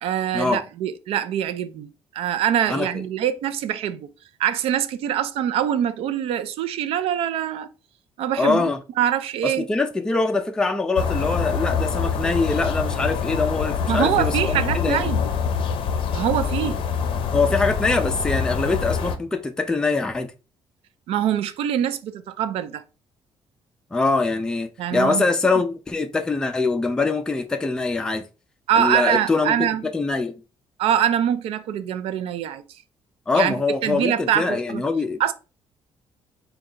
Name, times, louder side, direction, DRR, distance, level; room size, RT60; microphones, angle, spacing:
voice 1, 0.0-1.9 2.1-4.1 4.4-7.7 8.2-8.7 9.0-9.7 13.9-15.3 16.1-16.8 21.1-22.8 24.8-25.2 28.7-29.8 30.8-32.6 33.3-33.5 33.8-34.8 35.2-35.3, right 10 dB, 80° right, 0.4 m, -24 dB
voice 2, 8.4-8.8 9.4-15.0 17.3-20.3 23.9-28.2 28.8-30.3 33.3-35.3, left 3 dB, 5° left, 0.3 m, -23 dB
sound 1, 11.0-19.2, left 6 dB, 60° left, 0.5 m, -25 dB
3.9 x 2.3 x 3.7 m
cardioid pair, 160°, 10 cm